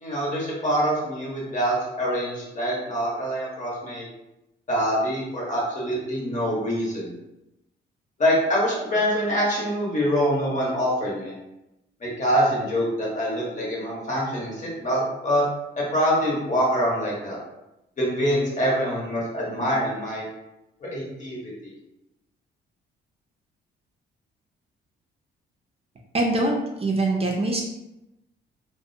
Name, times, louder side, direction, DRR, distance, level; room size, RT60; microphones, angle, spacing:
voice 1, 0.0-4.1 4.7-7.1 8.2-11.3 12.0-15.5 15.8-17.4 18.0-20.3 20.8-21.7, equal, 40° left, -4 dB, 1.0 m, -25 dB
voice 2, 26.1-27.6, right 2 dB, 30° right, -1 dB, 0.4 m, -23 dB
2.5 x 2.1 x 2.5 m, 0.92 s
cardioid pair, 90°, 20 cm